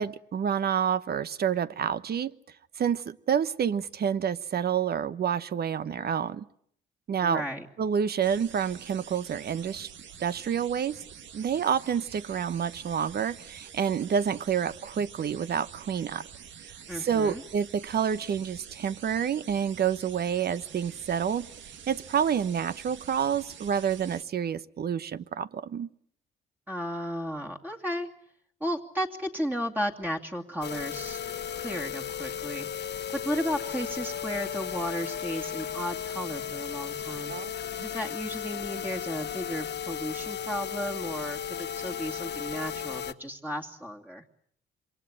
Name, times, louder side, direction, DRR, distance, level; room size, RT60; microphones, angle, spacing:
voice 1, 0.0-2.4 2.8-6.4 7.1-7.4 7.8-9.9 10.2-11.0 11.3-16.2 16.6-21.5 21.9-25.9 37.3-37.5, right 8 dB, 50° right, 15 dB, 1.1 m, -28 dB
voice 2, 7.2-7.7 16.9-17.4 26.7-28.1 28.6-31.2 31.6-32.7 33.1-37.3 37.8-44.2, equal, 10° right, 1 dB, 2.6 m, -34 dB
sound 1, 8.2-24.2, right 8 dB, 70° right, 1.8 m, -47 dB
sound 2, 30.6-43.1, left 8 dB, 60° left, 1.2 m, -35 dB
27.0 x 23.5 x 8.8 m, 0.66 s
cardioid pair, 90°, 20 cm